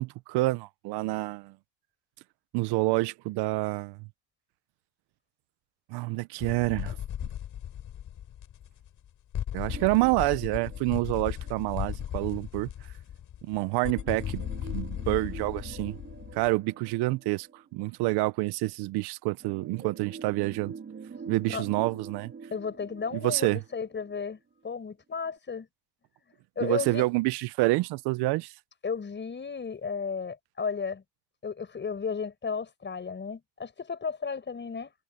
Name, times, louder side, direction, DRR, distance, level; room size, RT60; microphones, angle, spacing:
voice 1, 0.0-1.5 2.5-4.0 5.9-7.0 9.5-12.7 13.4-14.4 14.7-15.9 16.3-20.7 21.3-22.3 23.1-23.6 26.6-28.5, right 21 dB, 70° right, 0.9 m, -28 dB
sound 1, 6.4-9.0 9.3-16.5, left 10 dB, 50° left, 6.2 m, -36 dB
sound 2, 9.6-12.3 13.8-18.2 19.4-24.3 24.7-24.8 25.4-25.5, right 5 dB, 30° right, 4.3 m, -46 dB
voice 2, 22.5-25.7 26.6-27.1 28.8-31.0 31.4-34.9, left 5 dB, 25° left, 5.5 m, -34 dB
supercardioid pair, 95°, 41 cm